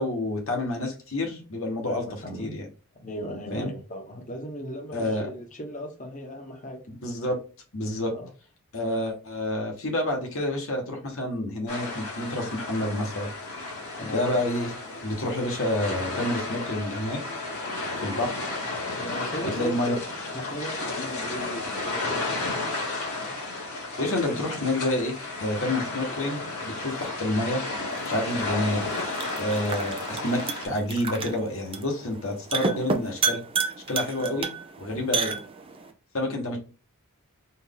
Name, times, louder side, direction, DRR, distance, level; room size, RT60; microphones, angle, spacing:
voice 1, 0.0-2.1 2.4-2.7 3.5-3.7 4.9-5.3 7.0-7.4 7.7-8.1 8.7-13.3 14.0-14.7 15.0-17.2 18.0-18.5 19.4-19.9 24.0-27.6 28.0-28.8 29.4-33.4 33.9-34.5 34.8-35.3 36.1-36.6, left 1 dB, 60° left, 1 dB, 1.3 m, -28 dB
voice 2, 1.8-2.5 3.0-6.8 8.1-8.3 14.0-14.4 18.9-22.6 34.2-34.4 35.1-35.3, equal, 35° left, 3 dB, 1.1 m, -38 dB
sound 1, 11.7-30.7, left 2 dB, 80° left, 2.1 m, -33 dB
sound 2, 27.9-35.9, right 4 dB, 25° right, 0.5 m, -32 dB
4.4 x 2.6 x 3.7 m, 0.35 s
head